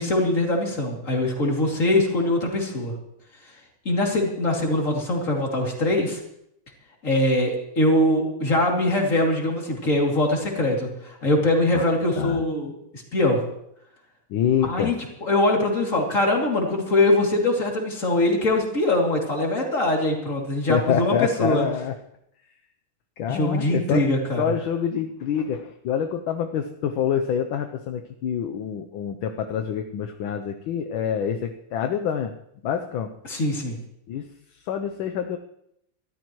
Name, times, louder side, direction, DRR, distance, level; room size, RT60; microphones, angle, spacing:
voice 1, 0.0-2.9 3.8-6.2 7.0-12.7 13.1-13.4 14.6-14.9 15.2-21.6 23.3-24.4 33.2-33.8, left 1 dB, 35° left, 0 dB, 3.1 m, -22 dB
voice 2, 14.3-14.9 20.7-21.9 23.2-24.0 24.4-32.3 32.6-33.1 34.1-34.2 34.6-35.4, left 8 dB, 70° left, 5 dB, 1.5 m, -26 dB
24.0 x 13.5 x 3.1 m, 0.75 s
omnidirectional pair, 2.3 m